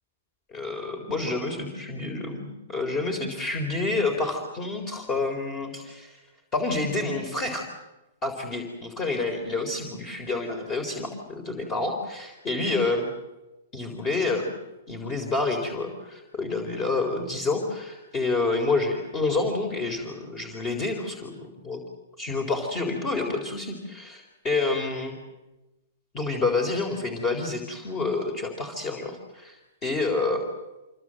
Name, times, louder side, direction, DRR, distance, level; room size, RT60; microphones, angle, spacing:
voice 1, 0.5-6.2 6.5-7.6 8.2-13.1 13.7-14.5 14.9-21.3 21.6-21.8 22.2-25.1 26.1-30.4, left 3 dB, 20° left, 4 dB, 4.0 m, -28 dB
27.0 x 24.5 x 7.9 m, 1.0 s
hypercardioid pair, 160°, 0 cm